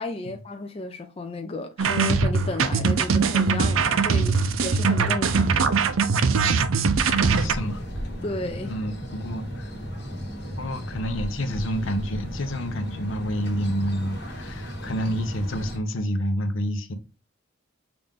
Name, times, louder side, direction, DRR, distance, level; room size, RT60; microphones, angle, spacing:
voice 1, 0.0-6.2 8.2-8.7, left 2 dB, 30° left, 0.4 m, -33 dB
sound 1, 1.8-7.5, right 5 dB, 80° right, 0.5 m, -21 dB
voice 2, 7.0-7.8 8.7-9.7 10.6-16.9, equal, 75° left, 0.8 m, -29 dB
sound 2, 7.1-15.8, equal, 55° left, 1.3 m, -35 dB
5.9 x 2.5 x 3.5 m
head